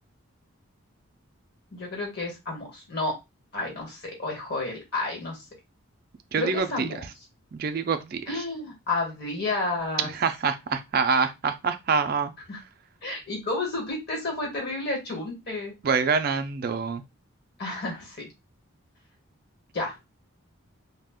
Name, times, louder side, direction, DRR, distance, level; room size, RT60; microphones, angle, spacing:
voice 1, 1.7-3.1 3.5-5.4 6.4-7.0 8.3-10.1 12.5-12.6 13.0-15.7 17.6-18.3 19.7-19.9, left 2 dB, 50° left, 0 dB, 1.1 m, -31 dB
voice 2, 6.3-6.9 7.5-8.2 10.0-12.3 15.8-17.0, right 5 dB, 45° right, 8 dB, 0.3 m, -25 dB
2.4 x 2.1 x 3.5 m, 0.23 s
head